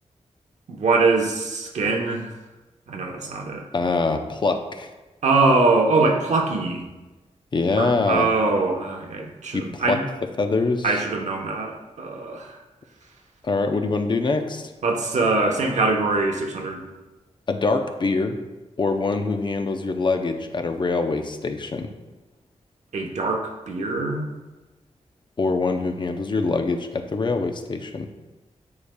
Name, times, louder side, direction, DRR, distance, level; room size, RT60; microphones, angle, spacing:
voice 1, 0.7-2.3 2.9-3.7 5.2-6.8 7.7-10.0 10.8-12.6 14.8-16.9 22.9-24.3, right 3 dB, 85° right, 1 dB, 0.9 m, -23 dB
voice 2, 3.7-4.9 7.5-8.3 9.5-10.0 10.4-11.0 13.4-14.7 17.5-18.4 18.8-21.9 25.4-28.1, left 3 dB, 40° left, 6 dB, 0.5 m, -24 dB
9.5 x 4.8 x 2.2 m, 1.1 s
wide cardioid pair, 150°, 12 cm